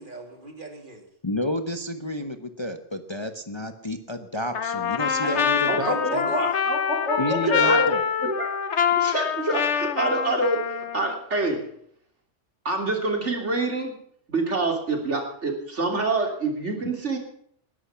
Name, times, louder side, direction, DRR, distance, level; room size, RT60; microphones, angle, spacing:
voice 1, 0.0-1.1 5.2-6.5, right 2 dB, 40° right, 3 dB, 3.1 m, -39 dB
voice 2, 1.2-6.3 7.2-8.0, left 1 dB, 25° left, 8 dB, 1.0 m, -30 dB
Trumpet, 4.5-11.2, left 7 dB, 65° left, 1.3 m, -25 dB
voice 3, 5.7-7.9 8.2-8.5 9.0-11.6 12.6-13.9 14.3-17.2, right 2 dB, 65° right, 3 dB, 3.4 m, -26 dB
20.5 x 11.5 x 5.8 m, 0.66 s
omnidirectional pair, 1.3 m